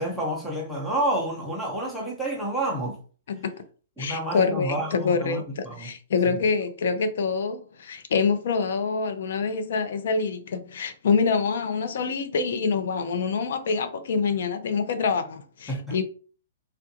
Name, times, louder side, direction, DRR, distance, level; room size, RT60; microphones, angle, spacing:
voice 1, 0.0-3.0 4.0-5.9 6.2-6.4 15.7-16.0, right 1 dB, 5° left, 0.7 m, -29 dB
voice 2, 4.0-16.0, left 5 dB, 65° left, 0.6 m, -26 dB
3.4 x 2.5 x 2.7 m
hypercardioid pair, 160°, 0 cm